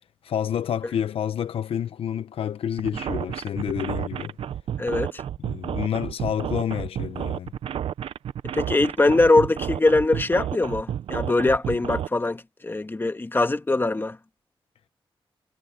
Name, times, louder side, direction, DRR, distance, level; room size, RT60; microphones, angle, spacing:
voice 1, 0.2-4.4 5.4-7.5, left 9 dB, 80° left, 0.7 m, -29 dB
sound 1, 2.8-12.1, right 10 dB, 90° right, 0.6 m, -31 dB
voice 2, 4.8-5.2 8.5-14.2, left 2 dB, 20° left, 1.6 m, -22 dB
cardioid pair, 85°, 10 cm